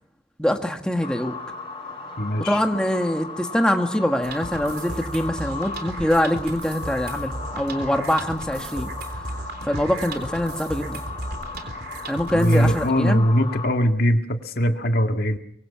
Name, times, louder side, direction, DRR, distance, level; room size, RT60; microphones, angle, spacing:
voice 1, 0.4-1.4 2.4-8.9 9.6-11.0 12.1-13.2, equal, 5° left, 4 dB, 1.6 m, -24 dB
sound 1, 1.0-13.7, left 4 dB, 30° left, 6.9 m, -36 dB
voice 2, 2.2-2.6 12.3-15.4, equal, 55° left, 5 dB, 2.1 m, -21 dB
sound 2, 4.2-12.9, right 2 dB, 60° right, 3.7 m, -35 dB
25.0 x 23.5 x 5.8 m, 0.64 s
head